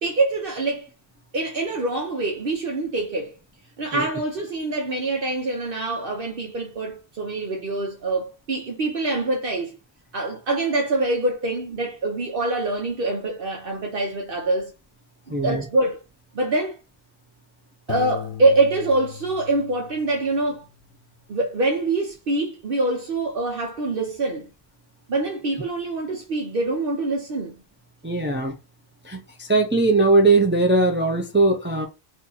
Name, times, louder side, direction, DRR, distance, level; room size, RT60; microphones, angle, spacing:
voice 1, 0.0-0.9 1.3-3.4 3.8-9.8 10.1-14.7 15.3-16.0 16.3-16.8 17.9-20.6 21.3-24.5 25.1-27.6, right 2 dB, 60° right, 0.9 m, -25 dB
voice 2, 15.3-15.6 28.0-28.5 29.0-31.9, right 2 dB, 15° right, 0.4 m, -20 dB
Piano, 17.9-20.6, left 10 dB, 90° left, 0.9 m, -37 dB
2.8 x 2.6 x 3.8 m
omnidirectional pair, 1.1 m